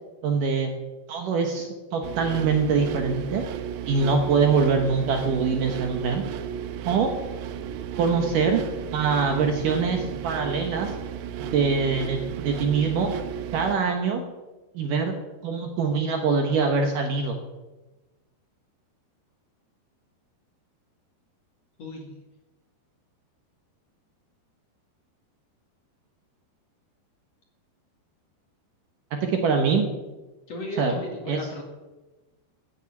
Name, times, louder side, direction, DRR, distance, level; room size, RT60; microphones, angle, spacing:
voice 1, 0.2-0.7 1.1-3.4 3.9-6.2 6.8-7.1 8.0-8.6 8.9-10.9 11.4-13.1 13.5-14.2 14.8-15.1 15.4-17.4 29.1-29.8 30.8-30.9 31.3-31.4, right 5 dB, 65° right, 4 dB, 2.2 m, -23 dB
sound 1, 2.0-13.8, right 9 dB, 80° right, 3.0 m, -34 dB
voice 2, 21.8-22.1 30.5-31.6, equal, 50° left, 1 dB, 2.5 m, -35 dB
16.0 x 8.6 x 7.2 m, 1.1 s
omnidirectional pair, 4.9 m